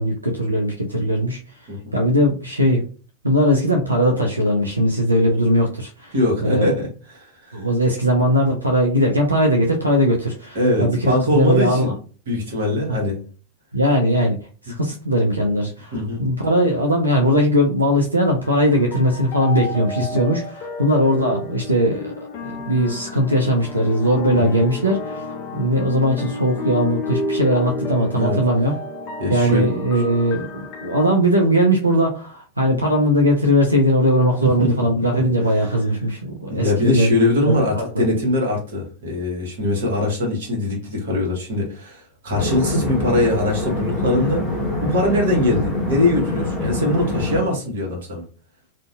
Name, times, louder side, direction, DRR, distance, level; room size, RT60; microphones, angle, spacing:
voice 1, 0.0-1.4 1.9-2.8 3.2-6.2 6.4-6.7 7.5-11.9 13.7-14.4 14.6-22.1 22.4-28.7 29.3-37.1 37.5-38.0, equal, 85° right, 1 dB, 0.4 m, -19 dB
voice 2, 6.1-7.6 10.5-11.9 12.3-13.2 15.9-16.2 20.1-20.2 24.3-24.6 28.1-28.4 29.2-29.7 34.4-34.9 35.1-35.2 36.5-44.4 44.8-48.3, left 1 dB, 60° right, -1 dB, 0.9 m, -22 dB
sound 1, 18.4-31.1, left 2 dB, 35° left, 0.5 m, -31 dB
sound 2, 42.4-47.4, left 1 dB, 5° right, 0.9 m, -24 dB
2.6 x 2.1 x 2.4 m, 0.38 s
figure-of-eight pair, 90°, 0 cm